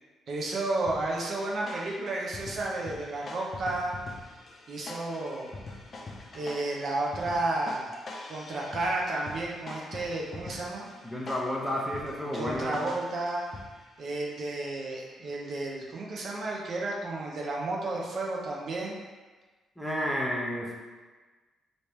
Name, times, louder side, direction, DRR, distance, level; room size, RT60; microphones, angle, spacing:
voice 1, 0.3-4.0 4.7-5.5 6.3-7.9 8.3-10.9 12.3-13.5 14.0-19.0, right 2 dB, 55° right, -2 dB, 0.6 m, -32 dB
sound 1, 0.9-14.0, left 2 dB, 45° left, 0.5 m, -44 dB
voice 2, 11.0-12.8 19.8-20.7, equal, ahead, -4 dB, 0.7 m, -31 dB
3.3 x 2.7 x 3.2 m, 1.3 s
cardioid pair, 90°, 0 cm